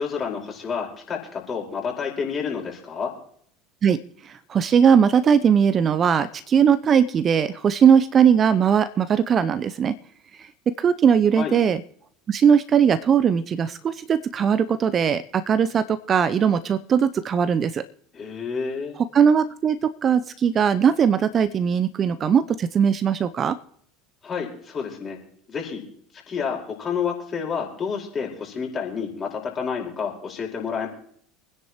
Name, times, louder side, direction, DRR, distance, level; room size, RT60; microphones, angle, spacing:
voice 1, 0.0-3.1 11.4-11.5 18.1-19.0 24.2-25.2 25.5-25.8 26.3-30.9, left 6 dB, 30° left, 0 dB, 4.8 m, -29 dB
voice 2, 4.5-9.9 10.8-11.8 12.3-17.8 19.1-19.8 20.0-23.6, right 7 dB, 35° right, 13 dB, 0.7 m, -19 dB
25.5 x 10.0 x 3.1 m, 0.63 s
figure-of-eight pair, 70°, 0 cm